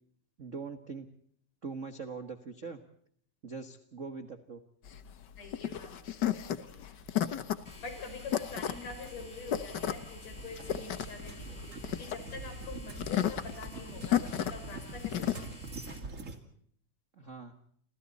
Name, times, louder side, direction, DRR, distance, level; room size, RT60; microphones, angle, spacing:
voice 1, 0.4-1.1 1.6-2.8 3.4-4.6 17.1-17.5, right 4 dB, 45° right, 8 dB, 0.9 m, -42 dB
sound 1, 4.9-15.5, left 10 dB, 85° left, 0.9 m, -33 dB
voice 2, 5.4-6.0 6.6-7.0 7.8-15.5, left 4 dB, 55° left, 5 dB, 6.4 m, -46 dB
sound 2, 6.8-16.4, right 3 dB, 25° right, 2.1 m, -46 dB
sound 3, 7.7-16.0, left 2 dB, 20° left, 3.0 m, -51 dB
29.0 x 27.5 x 4.2 m, 0.62 s
omnidirectional pair, 3.7 m